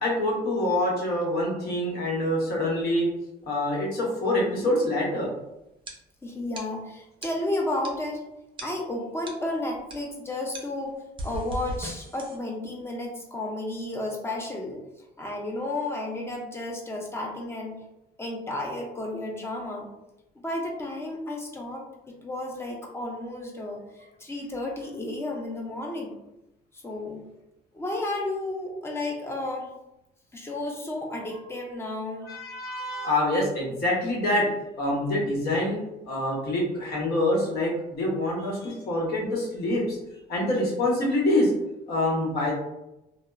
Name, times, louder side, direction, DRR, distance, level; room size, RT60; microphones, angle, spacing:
voice 1, 0.0-3.1 3.5-5.3 32.2-34.5 34.8-35.8 36.1-40.0 40.3-41.5 41.9-42.5, left 1 dB, 65° left, -3 dB, 1.0 m, -25 dB
sound 1, 3.5-3.9 4.5-5.1 5.8-5.9 6.3-6.7 7.2-7.3 7.8-8.1 8.6-8.7 9.3-9.4 9.7-10.0 10.5-12.4, right 1 dB, 30° right, 0.5 m, -38 dB
voice 2, 6.2-8.2 8.6-10.9 11.2-14.8 15.2-17.8 18.2-19.9 20.4-26.1 26.7-27.2 27.7-29.7 30.3-32.4, left 2 dB, 15° left, 0 dB, 0.6 m, -32 dB
2.8 x 2.0 x 2.3 m, 0.91 s
cardioid pair, 110°, 17 cm